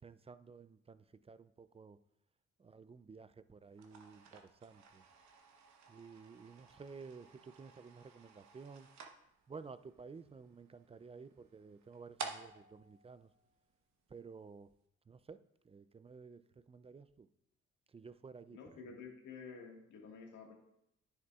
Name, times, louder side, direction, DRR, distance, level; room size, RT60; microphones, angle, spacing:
voice 1, 0.0-2.0 2.6-5.0 5.9-8.9 9.5-13.3 14.1-14.7 15.1-17.3 17.9-18.6, right 5 dB, 20° right, 13 dB, 0.4 m, -53 dB
sound 1, 3.7-14.1, right 5 dB, 65° right, 1.1 m, -53 dB
voice 2, 18.5-20.5, left 5 dB, 80° left, 0 dB, 1.8 m, -51 dB
10.0 x 8.1 x 2.4 m, 0.80 s
cardioid pair, 90°, 30 cm